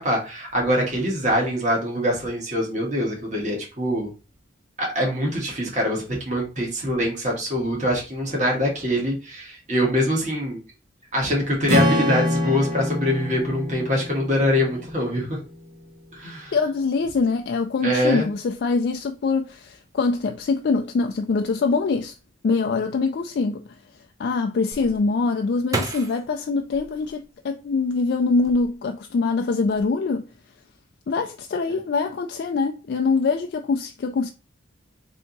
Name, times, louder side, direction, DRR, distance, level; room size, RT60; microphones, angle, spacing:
voice 1, 0.0-4.1 4.8-10.6 11.1-15.4 16.1-16.5 17.8-18.3 31.7-31.8, equal, 35° right, 1.4 m, -24 dB
Strum, 11.7-15.9, left 1 dB, 60° right, 1.5 m, -26 dB
voice 2, 16.5-22.1 22.4-23.6 24.2-30.3 31.1-34.3, left 4 dB, 55° left, 0.3 m, -24 dB
sound 1, 24.7-27.8 28.3-29.1 29.4-29.8, right 2 dB, 15° right, 0.5 m, -33 dB
3.4 x 2.8 x 3.9 m
head